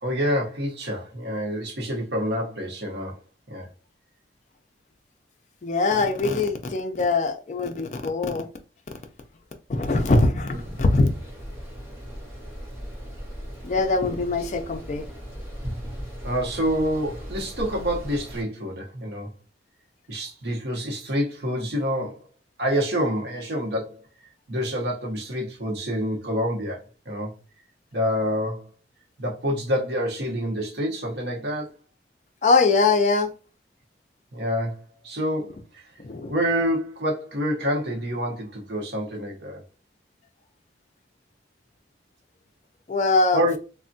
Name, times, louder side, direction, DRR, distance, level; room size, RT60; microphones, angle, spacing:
voice 1, 0.0-3.2 3.5-3.7 10.5-10.6 16.2-19.3 20.1-22.2 22.6-24.0 24.5-27.3 27.9-28.7 29.2-31.7 34.3-35.8 36.3-39.6 43.3-43.6, equal, 60° right, 0.8 m, -27 dB
voice 2, 5.6-8.5 9.7-11.1 13.6-15.0 32.4-33.3 36.0-36.3 42.9-43.6, left 3 dB, 40° left, 0.4 m, -22 dB
sound 1, 10.5-18.4, equal, 10° right, 1.1 m, -37 dB
3.3 x 2.1 x 2.6 m
head